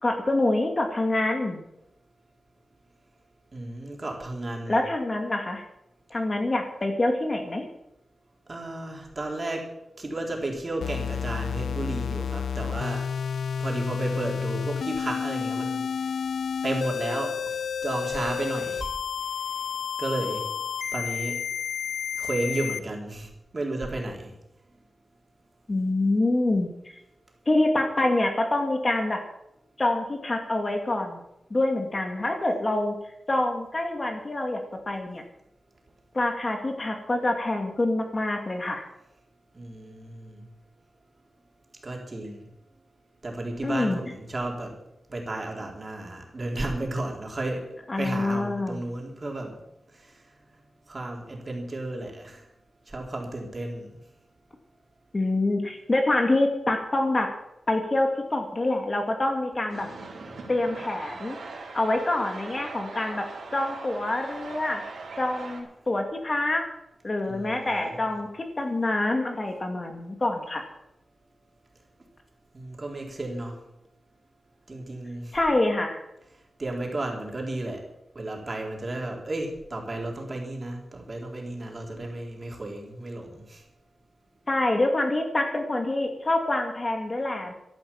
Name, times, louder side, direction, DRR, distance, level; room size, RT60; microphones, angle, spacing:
voice 1, 0.0-1.6 4.7-5.6 6.1-7.6 25.7-26.7 27.5-29.2 29.8-31.2 31.5-32.9 33.3-34.6 34.9-35.2 36.1-38.8 43.6-44.0 47.9-48.8 55.1-57.3 57.7-59.9 60.5-61.4 61.7-63.2 63.5-64.8 65.2-66.7 67.0-70.6 75.3-76.0 84.5-87.5, left 2 dB, 35° left, 4 dB, 2.4 m, -26 dB
voice 2, 3.5-4.8 8.5-9.7 10.0-13.0 13.6-16.1 16.6-18.9 20.0-20.5 20.9-21.5 22.2-24.3 39.5-40.5 41.8-42.5 43.2-44.7 45.1-47.6 48.0-49.6 49.9-50.2 50.9-52.5 52.9-54.0 67.3-68.2 72.5-73.6 74.7-75.4 76.6-77.8 78.1-83.6, right 2 dB, 35° right, 0 dB, 4.0 m, -33 dB
sound 1, 10.8-22.8, left 7 dB, 85° left, 0.5 m, -31 dB
sound 2, 59.7-65.6, right 3 dB, 85° right, 4.0 m, -41 dB
14.0 x 10.5 x 7.2 m, 0.83 s
wide cardioid pair, 95°, 0 cm